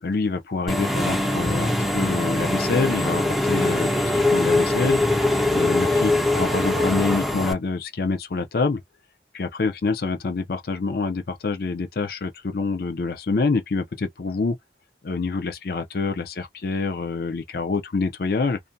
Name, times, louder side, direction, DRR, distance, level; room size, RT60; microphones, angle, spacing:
voice 1, 0.0-5.0 5.5-8.8 9.3-14.6 15.0-18.6, left 4 dB, 55° left, 0.5 m, -26 dB
Engine / Mechanisms, 0.7-7.5, left 1 dB, ahead, 0.4 m, -22 dB
2.5 x 2.1 x 2.6 m
head